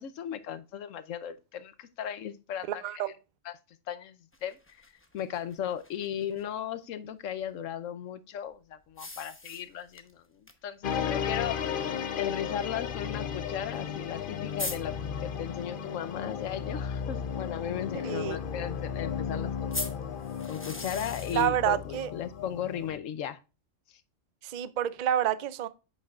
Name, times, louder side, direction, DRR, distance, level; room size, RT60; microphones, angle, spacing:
voice 1, 0.0-2.8 3.4-3.5 3.9-4.6 5.1-11.9 12.2-19.8 20.5-23.4, left 9 dB, 80° left, 1.1 m, -36 dB
voice 2, 2.8-3.1 18.0-18.4 21.3-22.1 24.4-25.7, right 10 dB, 60° right, 0.5 m, -28 dB
sound 1, 4.3-6.4 8.9-10.1 10.5-10.6 10.9-11.0 11.9-12.0 13.8-13.9 14.1-14.2 14.6-14.8 19.7-21.5, left 2 dB, 10° left, 0.7 m, -39 dB
sound 2, 10.8-23.0, left 7 dB, 50° left, 0.7 m, -34 dB
8.2 x 6.4 x 2.4 m
omnidirectional pair, 1.3 m